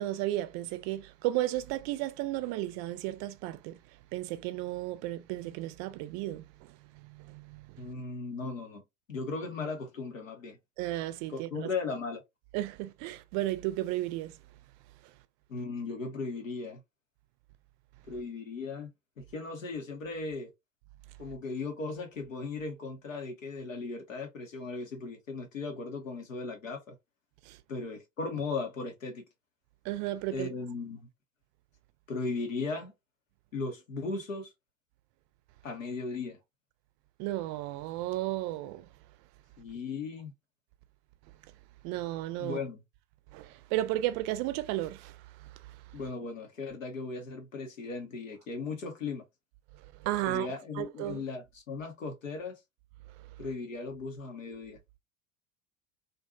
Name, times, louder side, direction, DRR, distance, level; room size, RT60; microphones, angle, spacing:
voice 1, 0.0-3.8 4.1-7.8 10.8-11.7 12.5-14.4 27.5-27.6 29.8-30.5 37.2-38.9 41.8-42.6 43.3-45.2 50.0-51.2, right 15 dB, 45° right, 0.5 m, -34 dB
voice 2, 7.8-8.8 9.1-10.6 11.3-12.2 15.5-16.8 18.1-18.9 19.2-20.5 21.2-27.0 27.7-29.2 30.3-31.1 32.1-32.9 33.5-34.5 35.6-36.4 39.6-40.3 42.4-42.8 45.9-49.2 50.3-52.6 53.4-54.8, left 4 dB, 85° left, 0.9 m, -37 dB
2.5 x 2.3 x 2.4 m
figure-of-eight pair, 75°, 38 cm